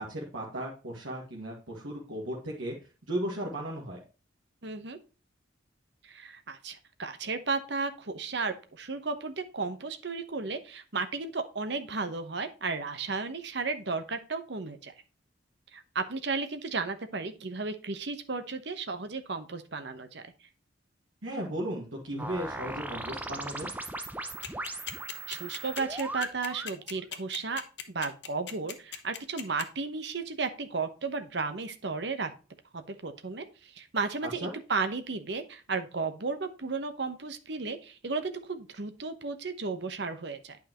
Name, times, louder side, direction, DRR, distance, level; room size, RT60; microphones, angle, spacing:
voice 1, 0.0-2.7 3.1-4.0 21.2-23.7 34.2-34.5, right 1 dB, 90° right, -2 dB, 1.9 m, -35 dB
voice 2, 4.6-5.0 6.0-14.9 15.7-20.2 25.3-27.6 27.9-32.3 32.7-40.6, right 4 dB, 60° right, 9 dB, 1.0 m, -34 dB
sound 1, 22.2-26.8, right 2 dB, 10° right, 0.6 m, -38 dB
sound 2, 24.4-29.6, left 9 dB, 60° left, 1.0 m, -38 dB
9.1 x 5.5 x 2.9 m, 0.34 s
head